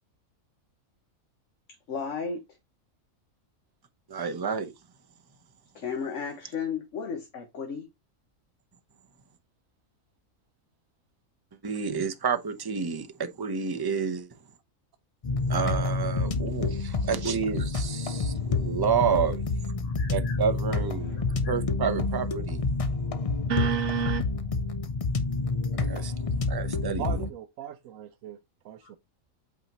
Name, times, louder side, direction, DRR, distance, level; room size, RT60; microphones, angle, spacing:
voice 1, 1.9-2.4 5.7-7.9 19.8-20.4 21.1-21.5 28.8-28.9, left 6 dB, 65° left, 1.4 m, -35 dB
voice 2, 4.1-4.7 11.6-14.3 15.5-19.4 20.1-21.2 21.5-22.6 25.8-26.1 26.5-27.2, right 6 dB, 25° right, 0.6 m, -29 dB
sound 1, 15.2-27.3, left 3 dB, 40° left, 0.5 m, -28 dB
voice 3, 23.5-24.2 27.0-28.4 28.6-29.0, right 10 dB, 80° right, 1.0 m, -32 dB
8.4 x 4.3 x 2.9 m
omnidirectional pair, 1.4 m